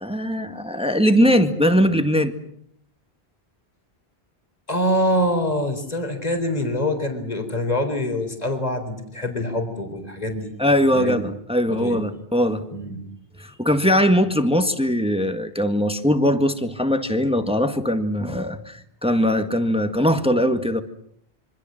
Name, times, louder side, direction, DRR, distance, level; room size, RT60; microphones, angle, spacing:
voice 1, 0.0-2.3 10.6-12.6 13.4-20.8, equal, 5° right, 1.7 m, -20 dB
voice 2, 4.7-10.5 10.9-11.2 11.7-12.0 12.7-13.0, equal, 40° left, 3.9 m, -25 dB
27.0 x 25.0 x 7.6 m
omnidirectional pair, 1.1 m